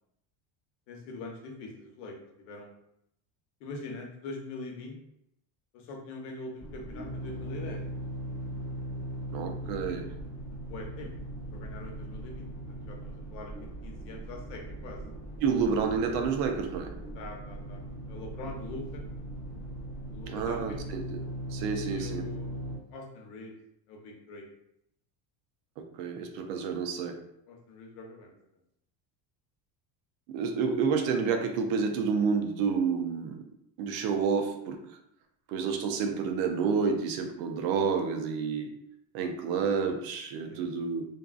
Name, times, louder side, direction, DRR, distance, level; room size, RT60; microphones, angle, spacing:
voice 1, 0.9-2.7 3.6-5.0 5.7-7.8 10.6-11.1 11.5-15.0 17.1-17.8 18.1-19.0 20.1-20.8 21.8-22.6 22.9-23.5 23.9-24.4 27.5-28.3 40.5-40.6, left 3 dB, 85° left, 1 dB, 0.9 m, -43 dB
sound 1, 6.6-22.8, right 1 dB, 35° left, 0.7 m, -39 dB
voice 2, 9.3-10.1 15.4-16.9 20.3-21.2 21.5-22.2 25.8-27.2 30.3-33.4 33.8-35.0 35.5-38.7 39.1-41.1, right 5 dB, 65° right, 4 dB, 0.5 m, -29 dB
2.6 x 2.3 x 2.3 m, 0.76 s
cardioid pair, 175°, 50 cm